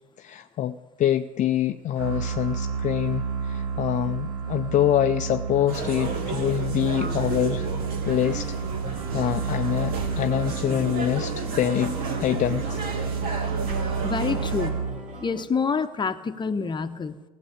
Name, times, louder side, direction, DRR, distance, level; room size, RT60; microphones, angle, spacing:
voice 1, 0.2-7.7 8.1-8.6 9.1-11.9 12.2-12.8, left 11 dB, 45° left, 8 dB, 0.5 m, -25 dB
sound 1, 2.0-15.4, right 6 dB, 85° right, 1.4 m, -30 dB
sound 2, 5.7-14.7, right 3 dB, 60° right, 2.2 m, -34 dB
sound 3, 8.7-15.4, right 2 dB, 40° right, 2.3 m, -42 dB
voice 2, 14.0-14.8 15.2-17.2, left 5 dB, 25° left, 9 dB, 0.9 m, -27 dB
16.5 x 7.6 x 8.6 m, 1.2 s
hypercardioid pair, 70°, 18 cm